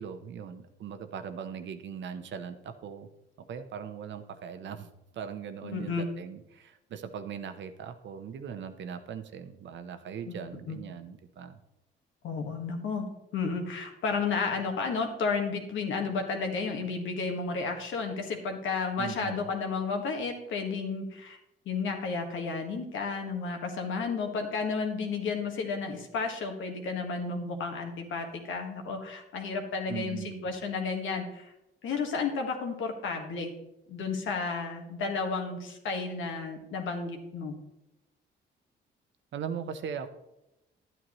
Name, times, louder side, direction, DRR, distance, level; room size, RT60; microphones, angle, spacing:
voice 1, 0.0-3.1 3.4-11.6 19.0-19.5 29.9-30.5 39.3-40.1, right 7 dB, 65° right, 9 dB, 0.9 m, -40 dB
voice 2, 5.6-6.1 10.3-10.8 12.2-13.1 13.3-21.4 21.7-31.5 31.8-33.5 33.9-37.6, left 4 dB, 80° left, 4 dB, 1.6 m, -32 dB
11.0 x 9.1 x 3.1 m, 0.93 s
cardioid pair, 90°, 20 cm